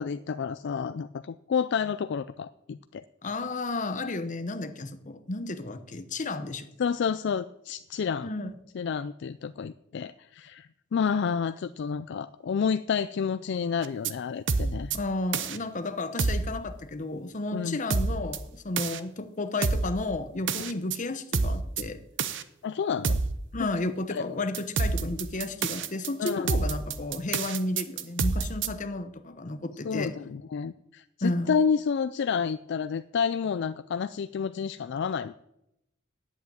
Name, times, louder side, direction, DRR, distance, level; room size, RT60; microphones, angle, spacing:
voice 1, 0.0-3.0 6.8-8.3 8.7-14.9 17.5-17.8 20.6-20.7 22.6-23.2 23.6-23.7 24.1-24.3 26.2-26.5 29.8-35.3, left 6 dB, 55° left, 13 dB, 0.3 m, -30 dB
voice 2, 3.2-6.7 8.2-8.5 14.9-22.0 23.5-30.1 31.2-31.6, left 2 dB, 35° left, 10 dB, 0.9 m, -32 dB
sound 1, 13.8-14.1 14.5-15.0 15.3-15.6 16.2-16.5 17.9-18.4 18.8-19.0 19.6-19.9 20.5-21.0 21.3-21.8 22.2-22.4 23.0-23.4 24.5-28.7, right 4 dB, 60° right, 0.8 m, -27 dB
9.6 x 8.3 x 9.0 m, 0.84 s
head